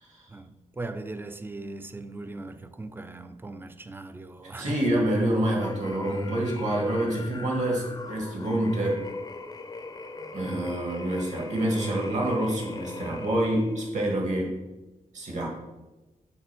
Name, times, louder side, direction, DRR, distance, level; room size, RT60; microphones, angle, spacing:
voice 1, 0.3-5.0 10.2-10.4, right 3 dB, 15° right, 0.4 m, -39 dB
voice 2, 4.6-9.1 10.3-14.6 15.1-15.5, right 1 dB, 65° right, 2.0 m, -27 dB
sound 1, 5.5-13.9, left 3 dB, 30° left, 0.6 m, -41 dB
6.9 x 4.4 x 6.0 m
wide cardioid pair, 165°, 13 cm